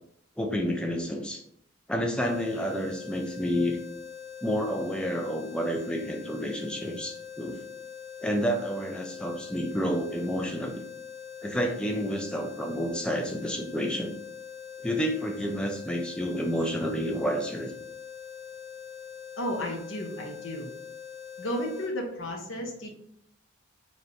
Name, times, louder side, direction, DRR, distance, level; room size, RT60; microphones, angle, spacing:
voice 1, 0.4-1.4 1.9-3.8 4.4-7.6 8.2-10.8 11.4-14.1 14.8-17.7, equal, 5° left, 2 dB, 0.4 m, -30 dB
sound 1, 2.2-21.9, left 8 dB, 45° left, 1.1 m, -43 dB
voice 2, 19.4-20.7 21.4-22.9, equal, 65° left, 1 dB, 0.7 m, -33 dB
3.2 x 2.8 x 4.0 m, 0.71 s
head